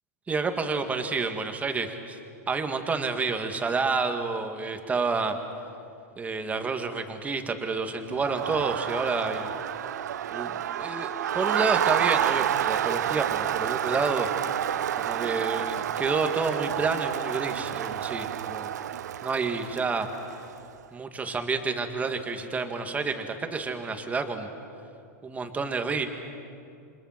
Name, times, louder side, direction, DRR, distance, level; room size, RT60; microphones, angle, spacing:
voice 1, 0.3-2.2 2.5-5.4 6.2-9.5 10.3-14.3 15.0-18.7 19.2-20.1 20.9-24.5 25.2-26.1, right 4 dB, 15° right, 6 dB, 2.1 m, -29 dB
Crowd, 8.1-20.6, right 10 dB, 80° right, 0.6 m, -29 dB
29.0 x 25.5 x 6.0 m, 2.5 s
hypercardioid pair, 115°, 9 cm